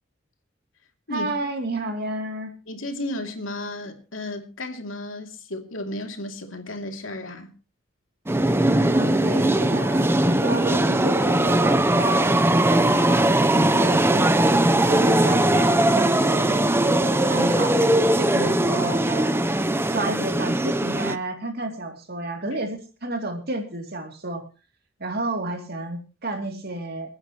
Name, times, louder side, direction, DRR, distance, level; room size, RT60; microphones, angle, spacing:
voice 1, 1.1-2.5 8.9-10.0 10.4-12.3 12.8-14.3 14.9-17.8 18.2-19.4 19.8-24.4 25.0-27.2, right 2 dB, 55° right, 2.7 m, -31 dB
voice 2, 2.7-7.5 22.5-22.6, left 1 dB, 90° left, 2.6 m, -33 dB
sound 1, 8.3-21.2, right 1 dB, 10° right, 0.6 m, -20 dB
28.5 x 9.7 x 3.0 m
head